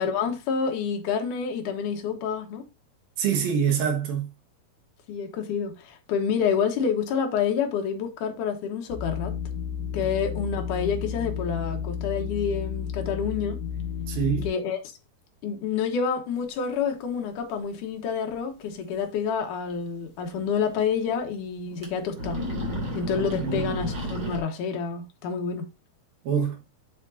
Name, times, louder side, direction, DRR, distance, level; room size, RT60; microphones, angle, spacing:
voice 1, 0.0-2.7 5.1-9.4 9.9-13.6 14.4-14.8 15.4-22.4 22.9-25.7, left 6 dB, 65° left, 2.5 m, -28 dB
voice 2, 3.2-4.3 10.0-10.1 14.1-14.5 23.2-23.7 26.2-26.6, right 7 dB, 70° right, 3.3 m, -26 dB
sound 1, 8.9-14.5, left 7 dB, 50° left, 2.4 m, -32 dB
sound 2, 18.3-18.4 18.7-18.8 20.3-20.4 20.7-20.8 21.7-21.9 22.1-24.4, equal, 30° right, 3.0 m, -32 dB
8.1 x 7.3 x 2.7 m
omnidirectional pair, 4.5 m